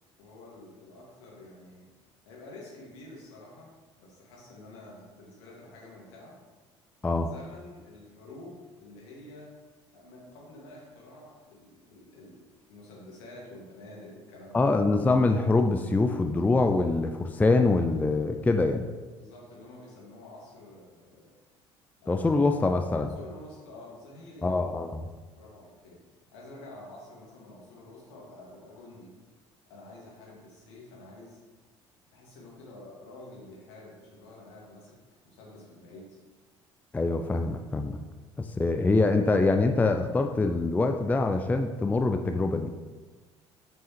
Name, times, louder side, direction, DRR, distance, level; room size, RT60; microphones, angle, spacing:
voice 1, 0.2-1.8 2.3-3.7 4.0-6.4 7.2-9.5 9.9-14.7 19.2-21.4 22.0-22.5 23.0-24.5 25.3-26.0 26.3-29.1 29.7-31.4 32.1-34.9 35.2-36.2, left 2 dB, 70° left, -4 dB, 1.8 m, -48 dB
voice 2, 14.5-18.9 22.1-23.1 24.4-25.1 36.9-38.0 38.4-42.7, left 3 dB, 10° left, 6 dB, 0.4 m, -24 dB
7.4 x 5.4 x 3.0 m, 1.3 s
figure-of-eight pair, 55°, 15 cm